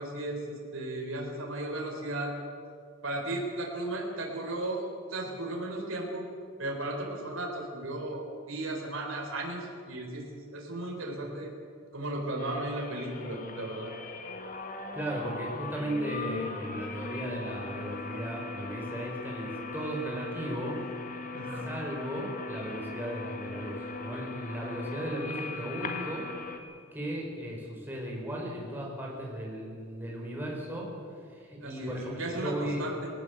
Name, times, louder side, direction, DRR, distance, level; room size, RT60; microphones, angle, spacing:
voice 1, 0.0-2.3 3.0-6.2 6.6-10.2 10.5-11.5 11.9-13.9 21.3-21.7 31.6-33.1, right 1 dB, 70° right, 0 dB, 4.4 m, -35 dB
sound 1, 12.4-26.6, left 3 dB, 40° left, 1.8 m, -39 dB
voice 2, 14.9-20.8 21.6-26.2 26.9-30.9 31.3-32.8, right 1 dB, 10° right, -2 dB, 5.2 m, -36 dB
20.5 x 18.0 x 8.1 m, 2.3 s
head